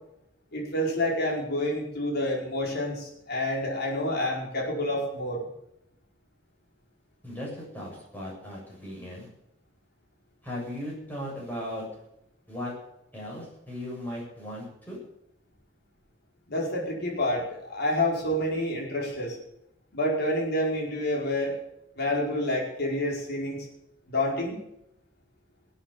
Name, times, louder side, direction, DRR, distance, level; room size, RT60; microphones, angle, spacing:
voice 1, 0.5-5.4 16.5-19.4 19.9-21.6 22.0-23.7 24.1-24.6, left 1 dB, 55° left, -2 dB, 5.0 m, -28 dB
voice 2, 7.2-9.3 10.4-11.8 12.5-12.7 13.1-15.0, left 1 dB, 10° left, -4 dB, 7.6 m, -37 dB
19.5 x 8.7 x 7.1 m, 0.81 s
head